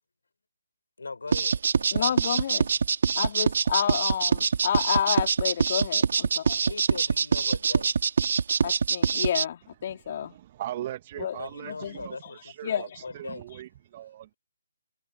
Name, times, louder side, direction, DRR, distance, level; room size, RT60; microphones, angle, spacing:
voice 1, 1.0-2.2 6.6-7.9 11.3-13.5, left 3 dB, 75° left, 5.5 m, -40 dB
sound 1, 1.3-9.4, right 6 dB, 60° right, 2.1 m, -24 dB
voice 2, 1.9-2.7 3.2-6.7 8.6-10.4 11.2-12.3 12.6-13.1, left 9 dB, 45° left, 3.5 m, -30 dB
voice 3, 10.1-12.9 13.1-14.3, right 13 dB, 35° right, 1.5 m, -39 dB
figure-of-eight pair, 145°, 0 cm